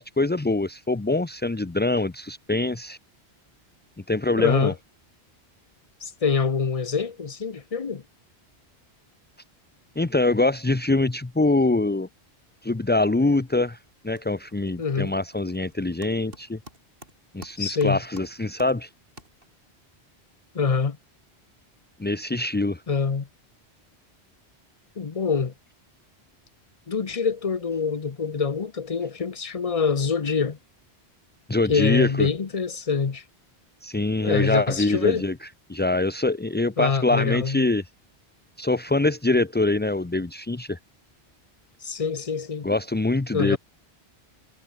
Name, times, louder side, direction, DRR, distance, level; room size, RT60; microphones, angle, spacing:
voice 1, 0.0-3.0 4.1-4.7 10.0-12.1 12.6-13.8 14.0-16.6 17.3-18.9 22.0-22.8 31.5-32.3 33.8-35.3 35.7-37.8 38.6-40.8 42.6-43.6, left 2 dB, 15° left, 0.4 m, -24 dB
voice 2, 4.4-4.7 6.0-8.0 14.8-15.1 17.6-18.0 20.5-21.0 22.9-23.3 25.0-25.5 26.9-30.6 31.7-33.2 34.2-35.2 36.8-37.7 41.8-42.7 43.3-43.6, left 5 dB, 35° left, 1.0 m, -25 dB
sound 1, 13.4-13.7 13.9-19.8, right 1 dB, 55° right, 6.2 m, -50 dB
omnidirectional pair, 1.1 m